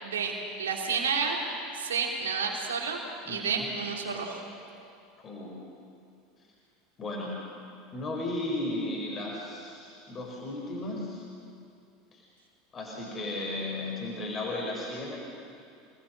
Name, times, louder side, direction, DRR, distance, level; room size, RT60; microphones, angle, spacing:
voice 1, 0.0-1.4 1.7-3.0 3.3-4.4, right 5 dB, 70° right, 0 dB, 3.1 m, -30 dB
voice 2, 3.2-3.7 5.2-5.6 7.0-7.4 7.9-11.2 12.1-12.2 12.7-15.2, left 2 dB, 30° left, -2 dB, 4.9 m, -35 dB
28.0 x 20.0 x 6.4 m, 2.5 s
figure-of-eight pair, 75°, 0 cm